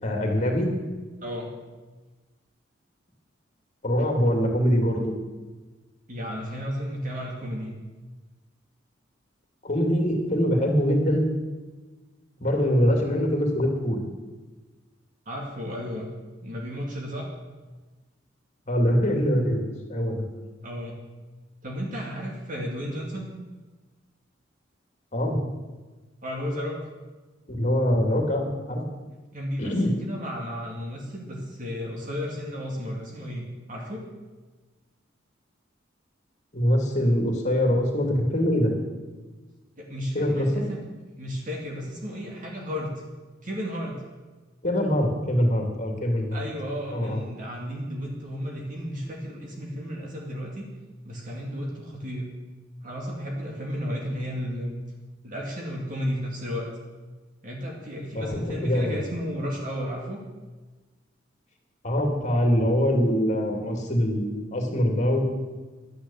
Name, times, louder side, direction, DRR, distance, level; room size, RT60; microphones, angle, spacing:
voice 1, 0.0-0.7 3.8-5.1 9.6-11.2 12.4-14.0 18.7-19.6 19.9-20.2 25.1-25.4 27.5-28.8 29.6-29.9 36.5-38.7 40.1-40.6 44.6-46.4 46.9-47.2 58.1-59.0 61.8-65.2, equal, 40° left, 2 dB, 2.6 m, -23 dB
voice 2, 6.1-7.8 15.3-16.1 16.4-17.3 20.6-21.0 21.6-23.3 26.2-26.8 29.3-34.0 39.8-40.8 41.2-43.0 43.4-44.0 46.3-50.7 51.0-52.3 52.8-54.8 55.2-56.7 57.4-60.2, equal, 45° right, -2 dB, 2.3 m, -33 dB
12.0 x 10.0 x 7.2 m, 1.3 s
head